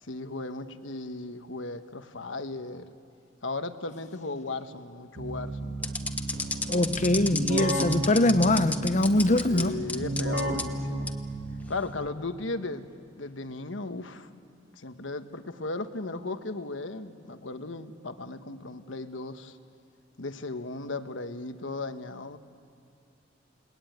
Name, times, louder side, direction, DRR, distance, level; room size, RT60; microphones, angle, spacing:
voice 1, 0.0-2.9 3.4-6.2 7.8-8.1 9.4-11.2 11.7-12.9 13.1-14.3 14.8-19.6 20.2-22.4, left 2 dB, 90° left, 1.2 m, -36 dB
Keyboard (musical), 5.1-12.0, right 1 dB, 70° right, 2.7 m, -33 dB
sound 1, 5.8-9.6 9.9-10.6 11.1-11.2 11.8-12.1, left 3 dB, 10° left, 1.1 m, -31 dB
voice 2, 6.7-9.8, left 1 dB, 40° left, 0.8 m, -23 dB
30.0 x 20.0 x 9.4 m
head